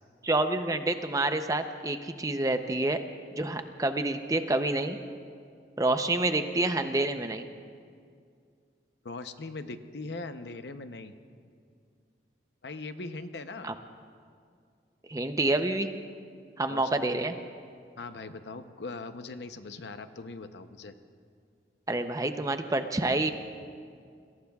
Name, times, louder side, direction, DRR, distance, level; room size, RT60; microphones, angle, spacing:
voice 1, 0.2-3.0 3.3-5.0 5.8-7.4 13.6-13.7 15.1-15.9 16.6-17.4 21.9-23.3, right 2 dB, 20° right, 8 dB, 0.6 m, -28 dB
voice 2, 9.0-11.2 12.6-13.7 16.7-16.9 18.0-20.9, left 3 dB, 75° left, 9 dB, 0.7 m, -40 dB
28.0 x 22.0 x 2.4 m, 2.2 s
head